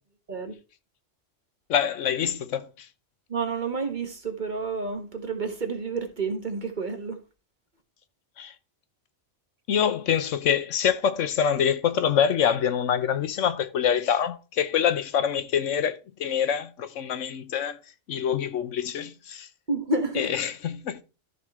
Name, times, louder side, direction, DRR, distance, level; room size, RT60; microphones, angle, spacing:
voice 1, 1.7-2.9 8.4-8.5 9.7-17.8 18.1-19.5 20.2-21.0, left 8 dB, 75° left, 1.1 m, -25 dB
voice 2, 3.3-7.2 19.7-20.3, right 3 dB, 40° right, 1.5 m, -30 dB
13.5 x 5.0 x 3.6 m
omnidirectional pair, 1.3 m